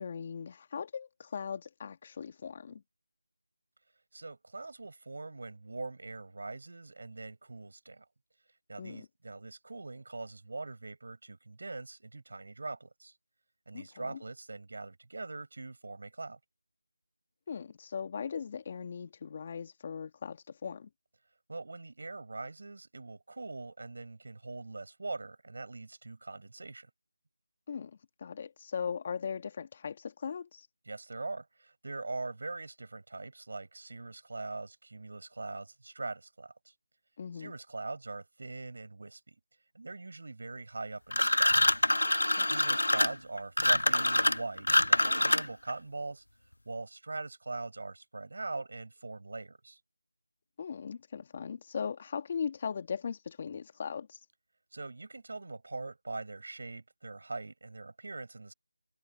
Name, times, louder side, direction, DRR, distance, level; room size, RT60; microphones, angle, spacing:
voice 1, 0.0-2.8 8.8-9.1 13.7-14.2 17.5-20.9 27.7-27.9 28.2-30.7 37.2-37.5 42.4-42.5 50.6-54.2, left 6 dB, 25° left, 2.0 m, -39 dB
voice 2, 4.1-8.0 8.7-13.1 13.7-16.4 21.5-26.9 30.9-36.7 37.3-39.3 39.7-41.5 42.5-46.2 46.7-49.8 54.7-58.5, right 3 dB, 55° right, 7.7 m, -42 dB
sound 1, 41.1-45.7, left 1 dB, 85° left, 1.0 m, -25 dB
figure-of-eight pair, 170°, 0 cm